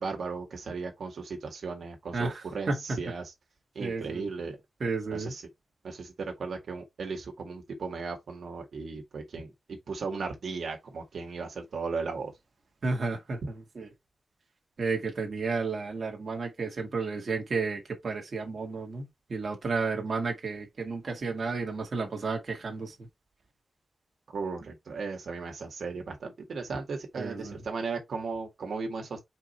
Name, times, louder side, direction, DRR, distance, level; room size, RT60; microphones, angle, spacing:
voice 1, 0.0-3.3 3.8-4.6 5.1-5.4 5.8-12.3 24.3-29.2, right 4 dB, 70° right, 1.9 m, -36 dB
voice 2, 2.1-2.8 3.8-4.3 4.8-5.3 12.8-13.4 13.8-13.9 14.8-22.9 27.2-27.6, right 4 dB, 45° right, 1.9 m, -32 dB
4.9 x 4.6 x 4.3 m
wide cardioid pair, 180°, 0 cm